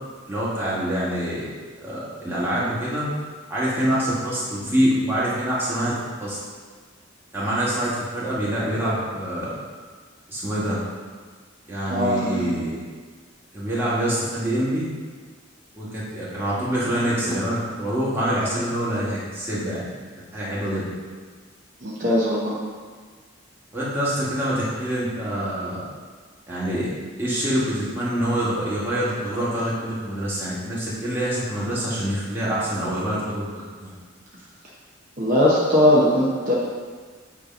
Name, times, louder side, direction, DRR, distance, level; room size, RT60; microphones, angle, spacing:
voice 1, 0.3-1.4 1.8-3.1 3.5-6.4 7.3-9.5 10.3-10.8 11.7-12.7 13.5-14.9 15.7-19.8 20.3-20.8 23.7-25.8 26.5-26.9 27.2-33.5 33.8-33.9, equal, 10° right, -9 dB, 1.6 m, -25 dB
voice 2, 11.9-12.6 21.8-22.6 35.2-36.5, left 1 dB, 40° right, -6 dB, 0.9 m, -20 dB
8.3 x 2.9 x 5.3 m, 1.5 s
head